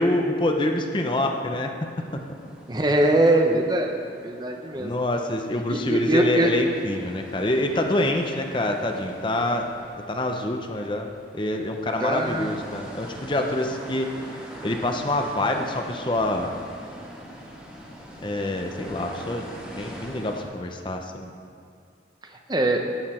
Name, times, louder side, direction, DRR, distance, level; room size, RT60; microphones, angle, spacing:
voice 1, 0.0-1.7 4.7-9.7 10.1-11.1 11.3-14.1 14.6-16.5 18.2-19.5 19.8-21.3, left 1 dB, 25° left, 4 dB, 0.7 m, -26 dB
sound 1, 2.0-5.5 5.8-20.4, equal, 5° right, 1.7 m, -43 dB
voice 2, 2.7-4.9 5.7-6.5 12.0-12.6 22.5-22.9, right 1 dB, 25° right, 3 dB, 0.7 m, -22 dB
13.5 x 9.0 x 4.3 m, 2.4 s
head